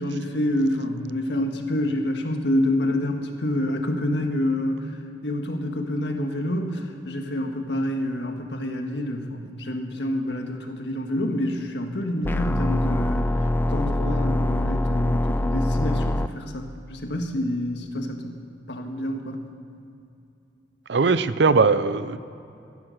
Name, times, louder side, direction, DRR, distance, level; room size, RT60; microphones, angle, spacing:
voice 1, 0.0-4.9 5.2-18.3 18.7-19.4, left 1 dB, 75° left, 4 dB, 1.6 m, -27 dB
sound 1, 12.2-16.3, left 1 dB, 10° left, 0.3 m, -23 dB
voice 2, 20.9-22.2, right 4 dB, 70° right, 14 dB, 0.6 m, -20 dB
15.5 x 11.0 x 6.5 m, 2.6 s
head